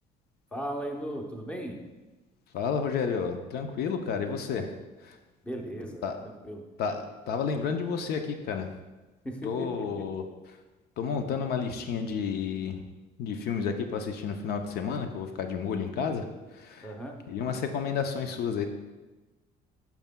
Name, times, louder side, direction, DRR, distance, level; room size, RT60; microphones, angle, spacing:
voice 1, 0.5-1.8 5.4-6.7 9.2-10.1 16.8-17.2, equal, 5° left, 2 dB, 0.8 m, -37 dB
voice 2, 2.5-4.7 5.0-5.2 6.0-6.2 6.8-8.7 9.4-10.2 11.0-12.8 13.2-16.3 16.5-16.9 17.3-18.7, left 6 dB, 70° left, 6 dB, 0.6 m, -31 dB
8.9 x 6.0 x 2.2 m, 1.1 s
cardioid pair, 110°, 17 cm